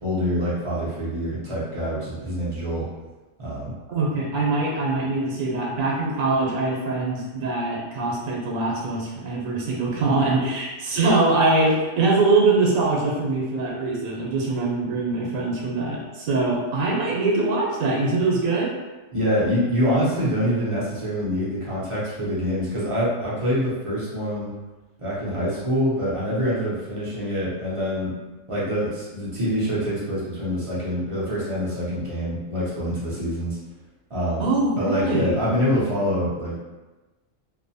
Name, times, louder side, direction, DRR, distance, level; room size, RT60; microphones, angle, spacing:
voice 1, 0.0-2.9 3.4-3.7 19.1-24.5 25.0-28.1 28.5-33.6 34.1-34.5 34.8-36.5, equal, 35° right, -8 dB, 0.5 m, -25 dB
voice 2, 3.9-18.7 34.4-35.4, right 3 dB, 85° right, -3 dB, 1.0 m, -23 dB
2.7 x 2.1 x 2.6 m, 1.2 s
omnidirectional pair, 1.4 m